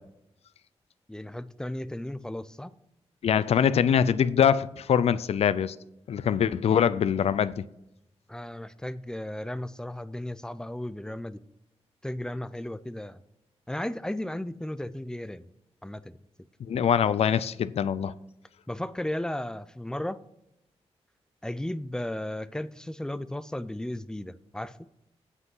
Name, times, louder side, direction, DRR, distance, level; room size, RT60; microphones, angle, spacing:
voice 1, 1.1-2.8 8.3-11.4 12.0-13.2 13.7-15.4 15.8-16.2 18.7-20.2 21.4-24.9, left 1 dB, 5° left, 0.4 m, -35 dB
voice 2, 3.2-5.8 6.1-7.7 16.7-18.1, left 8 dB, 70° left, 0.4 m, -23 dB
8.2 x 8.2 x 5.5 m
wide cardioid pair, 135°, 11 cm